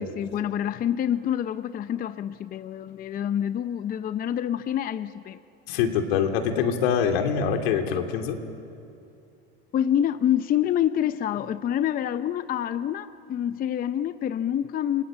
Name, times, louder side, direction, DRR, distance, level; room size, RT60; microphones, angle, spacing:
voice 1, 0.0-5.4 9.7-15.0, left 10 dB, 30° left, 13 dB, 0.6 m, -27 dB
voice 2, 5.7-8.4, left 7 dB, 75° left, 5 dB, 2.8 m, -24 dB
28.5 x 19.5 x 8.8 m, 2.6 s
supercardioid pair, 120°, 31 cm